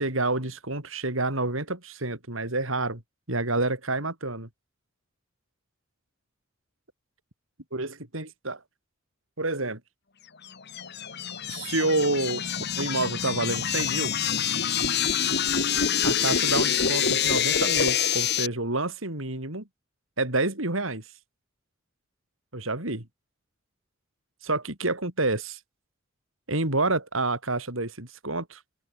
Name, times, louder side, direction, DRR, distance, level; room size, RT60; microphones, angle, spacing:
voice 1, 0.0-3.0 3.3-4.5 7.7-8.6 9.4-9.8 11.5-12.5 12.8-14.1 16.0-19.7 20.2-21.0 22.5-23.1 24.4-25.6 26.5-28.6, right 2 dB, 70° right, 5.0 m, -28 dB
sound 1, 10.5-18.5, left 8 dB, 55° left, 2.3 m, -26 dB
head